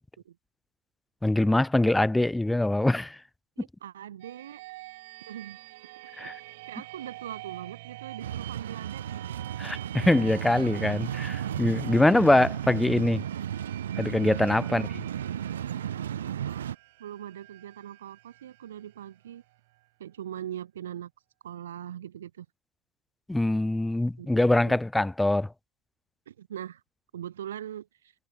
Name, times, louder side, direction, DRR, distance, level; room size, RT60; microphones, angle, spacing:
voice 1, 1.2-3.2 6.2-6.4 9.6-13.2 14.0-14.8 23.3-25.5, left 1 dB, 5° left, 1.0 m, -23 dB
voice 2, 3.6-4.6 5.3-5.6 6.2-6.3 6.7-9.2 14.6-15.0 16.1-16.7 17.0-19.4 20.0-21.1 21.4-22.5 24.2-24.3 24.7-24.8 26.3-26.8 27.1-28.1, right 10 dB, 75° right, 4.2 m, -41 dB
sound 1, 4.2-19.8, right 21 dB, 40° right, 3.7 m, -47 dB
sound 2, 8.2-16.7, right 10 dB, 90° right, 1.4 m, -34 dB
supercardioid pair, 175°, 0 cm